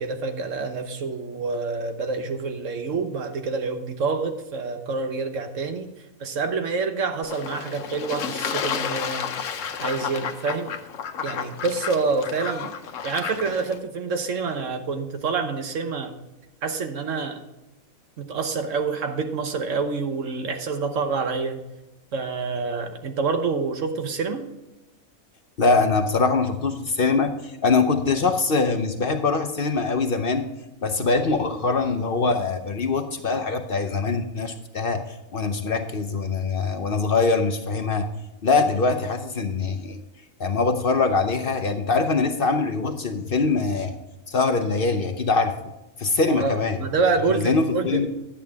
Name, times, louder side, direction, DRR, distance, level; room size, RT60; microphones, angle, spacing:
voice 1, 0.0-5.9 6.2-9.3 9.8-10.8 11.2-12.7 13.0-16.1 16.6-17.4 18.2-21.6 22.1-24.4 46.3-48.1, right 4 dB, 65° right, 7 dB, 1.3 m, -27 dB
Fowl / Bird / Water, 7.2-13.8, left 7 dB, 70° left, 1.1 m, -31 dB
voice 2, 25.6-30.5 30.8-38.1 38.4-40.0 40.4-44.0 44.3-45.6 46.0-46.8 47.3-48.1, left 4 dB, 50° left, 7 dB, 0.8 m, -23 dB
10.5 x 8.6 x 3.5 m, 1.0 s
omnidirectional pair, 1.5 m